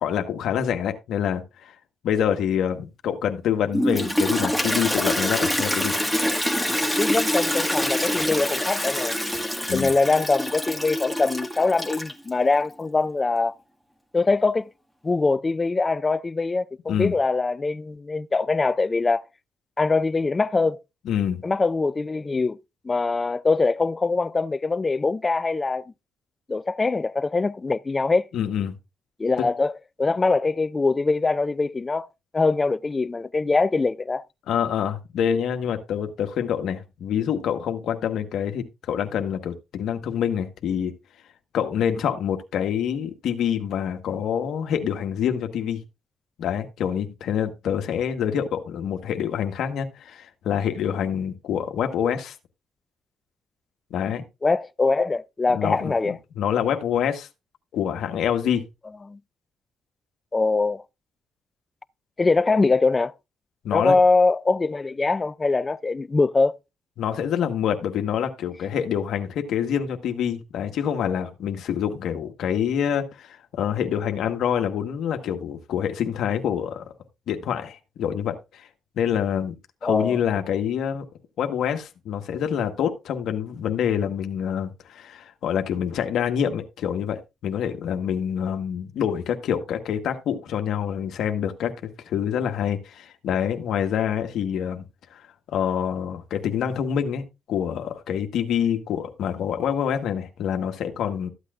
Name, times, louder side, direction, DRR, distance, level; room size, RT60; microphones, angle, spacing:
voice 1, 0.0-1.7 2.0-6.0 9.7-9.9 16.9-17.1 21.0-21.4 28.3-28.7 34.5-40.9 41.5-45.8 46.4-52.3 53.9-54.2 55.5-57.3 57.7-58.6 63.6-63.9 67.0-76.9 77.3-78.7 79.0-79.5 79.8-81.0 81.4-94.8 95.1-95.2 95.5-101.3, left 8 dB, 75° left, 1.4 m, -26 dB
Toilet flush, 3.7-12.3, equal, 5° right, 1.7 m, -25 dB
voice 2, 6.7-9.2 9.7-13.6 14.1-14.7 15.0-19.2 19.8-20.8 21.4-22.6 22.8-25.8 26.5-28.3 29.2-29.7 30.0-32.1 32.3-34.2 54.4-56.2 59.1-59.2 60.3-60.8 62.2-63.1 63.7-66.6 79.8-80.2, left 3 dB, 25° left, 0.4 m, -23 dB
13.5 x 8.2 x 2.5 m
cardioid pair, 90°, 0 cm